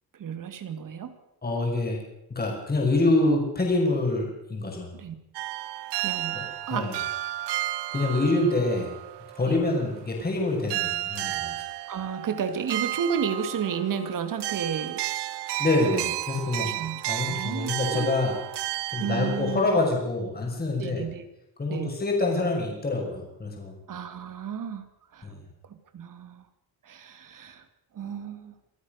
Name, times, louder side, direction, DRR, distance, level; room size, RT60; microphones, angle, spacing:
voice 1, 0.1-1.1 4.9-5.1 6.0-6.4 6.7-6.9 8.3-8.5 9.4-9.6 11.9-15.0 15.9-16.2 16.6-17.0 17.3-18.1 19.0-19.7 20.8-21.2 21.7-21.9 23.9-24.9 25.1-25.3 25.7-26.5 26.8-27.6 27.9-28.5, right 7 dB, 50° right, 9 dB, 2.6 m, -32 dB
voice 2, 1.4-2.0 2.3-4.9 6.3-6.4 6.7-6.9 7.9-8.9 9.4-11.6 15.6-16.7 17.1-18.4 18.9-21.0 21.6-23.8 25.2-25.4, left 2 dB, 25° left, 0 dB, 6.0 m, -26 dB
sound 1, 5.3-10.3 10.7-19.9, right 16 dB, 80° right, 0.9 m, -33 dB
26.5 x 15.0 x 6.6 m, 0.88 s
cardioid pair, 125°, 40 cm